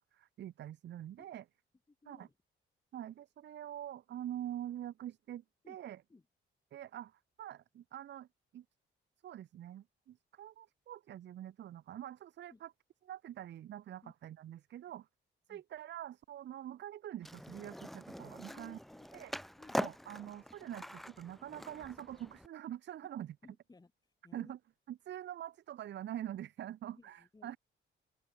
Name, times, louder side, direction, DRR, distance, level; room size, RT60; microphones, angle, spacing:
voice 1, 0.0-1.4 2.1-2.3 2.9-6.0 6.7-8.3 8.5-8.6 9.2-12.7 13.1-15.1 15.5-18.8 19.1-19.3 19.8-23.3 24.3-24.6 24.9-27.6, right 11 dB, 60° right, 0.5 m, -45 dB
voice 2, 1.9-2.3 5.6-5.8 6.1-6.2 12.5-12.6 14.0-14.1 15.5-15.6 18.5-19.2 19.6-19.8 23.4-24.5 26.9-27.5, left 3 dB, 20° left, 1.1 m, -60 dB
Skateboard, 17.2-22.5, equal, ahead, 0.4 m, -43 dB
open air
cardioid pair, 95°, 21 cm